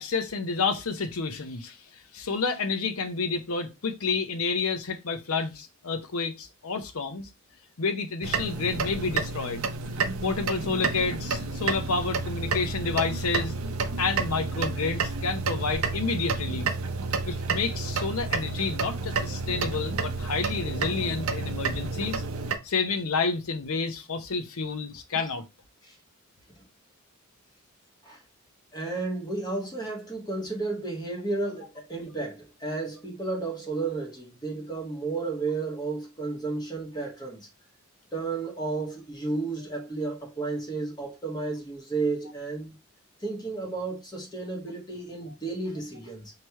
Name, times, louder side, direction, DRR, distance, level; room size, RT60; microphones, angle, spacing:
voice 1, 0.0-7.3 7.8-9.6 10.0-13.5 14.0-16.7 17.2-22.2 22.6-25.4, left 4 dB, 80° left, 0.7 m, -30 dB
sound 1, 8.2-22.6, right 4 dB, 75° right, 0.6 m, -30 dB
voice 2, 28.7-37.5 38.1-42.8 43.2-46.3, right 3 dB, 20° left, 1.2 m, -32 dB
3.2 x 2.9 x 4.5 m
head